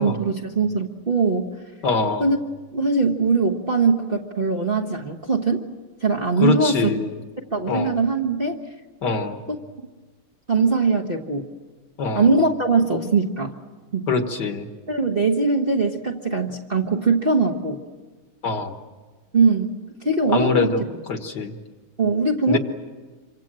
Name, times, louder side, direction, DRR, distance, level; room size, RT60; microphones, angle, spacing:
voice 1, 0.0-1.5 2.2-2.4 2.7-5.6 6.0-6.9 7.5-8.6 9.5-9.6 10.5-11.5 12.1-13.6 13.9-14.1 14.9-17.8 19.3-20.7 22.0-22.6, right 4 dB, 30° right, 0 dB, 1.2 m, -21 dB
voice 2, 1.8-2.3 6.4-7.2 7.7-7.9 9.0-9.4 12.0-12.3 14.1-14.7 18.4-18.8 20.3-20.8 21.1-21.6 22.5-22.6, left 4 dB, 55° left, 6 dB, 2.1 m, -23 dB
27.5 x 25.0 x 7.6 m, 1.3 s
omnidirectional pair, 2.3 m